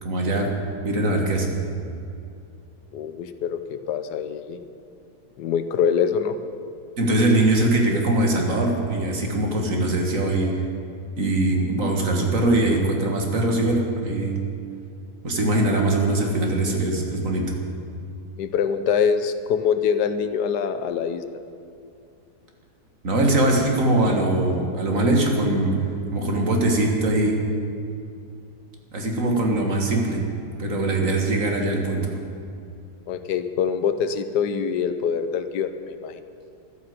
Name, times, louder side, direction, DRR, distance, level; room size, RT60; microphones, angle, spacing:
voice 1, 0.0-0.5 0.8-1.6 7.0-10.5 11.2-14.4 15.2-17.6 23.0-25.8 26.1-27.4 28.9-30.2 30.6-32.1, right 2 dB, 55° right, 1 dB, 2.1 m, -22 dB
voice 2, 2.9-4.6 5.4-6.4 18.4-21.2 33.1-36.2, left 7 dB, 85° left, 9 dB, 1.4 m, -24 dB
12.5 x 10.0 x 7.8 m, 2.6 s
omnidirectional pair, 1.7 m